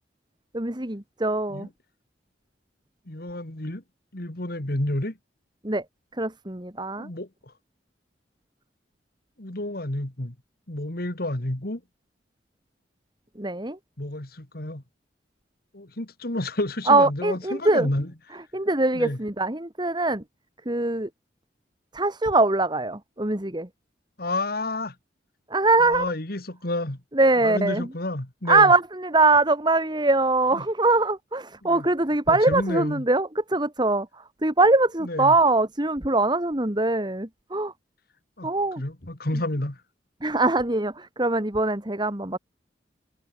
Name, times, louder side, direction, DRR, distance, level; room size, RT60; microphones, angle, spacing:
voice 1, 0.5-1.7 5.6-5.8 6.2-7.1 13.4-13.8 16.9-17.9 18.5-20.2 20.7-21.1 21.9-23.7 25.5-26.0 27.1-27.9 28.5-37.7 38.4-38.8 40.2-42.4, right 2 dB, 25° right, 2.1 m, -22 dB
voice 2, 3.1-3.8 4.1-5.2 7.0-7.5 9.4-10.3 10.7-11.8 14.0-14.8 15.7-18.1 18.9-19.2 24.2-25.0 25.8-27.0 27.4-28.7 30.5-30.6 31.6-31.9 32.3-33.0 35.0-35.4 38.4-38.5 38.8-39.8, left 1 dB, 55° left, 2.3 m, -30 dB
head